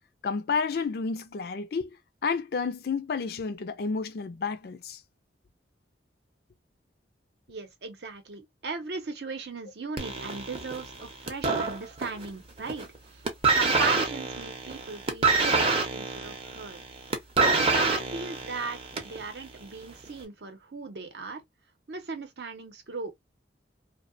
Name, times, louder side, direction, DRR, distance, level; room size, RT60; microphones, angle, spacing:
voice 1, 0.2-2.0 2.2-5.0, left 5 dB, 60° left, 0.4 m, -30 dB
voice 2, 7.5-13.3 13.5-16.8 17.5-21.4 21.9-23.1, right 4 dB, 65° right, 0.7 m, -37 dB
sound 1, 10.0-12.3 12.6-13.0 13.2-19.2 20.0-20.1, right 4 dB, 30° right, 0.6 m, -26 dB
2.7 x 2.1 x 2.5 m
head